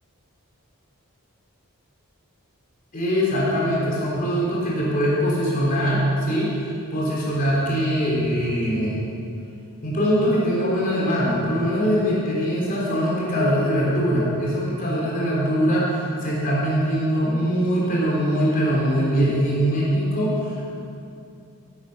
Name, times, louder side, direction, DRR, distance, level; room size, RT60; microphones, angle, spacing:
voice 1, 2.9-6.5 6.9-9.1 9.8-20.7, equal, 40° left, -6 dB, 3.5 m, -22 dB
16.0 x 9.1 x 5.9 m, 2.6 s
head